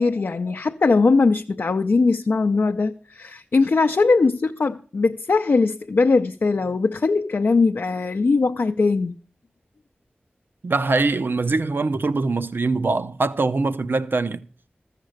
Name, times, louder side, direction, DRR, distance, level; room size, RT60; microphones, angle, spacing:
voice 1, 0.0-9.2, left 4 dB, 70° left, 0.4 m, -20 dB
voice 2, 10.6-14.4, right 3 dB, 70° right, 0.6 m, -23 dB
14.0 x 6.6 x 6.4 m
wide cardioid pair, 65°, 4 cm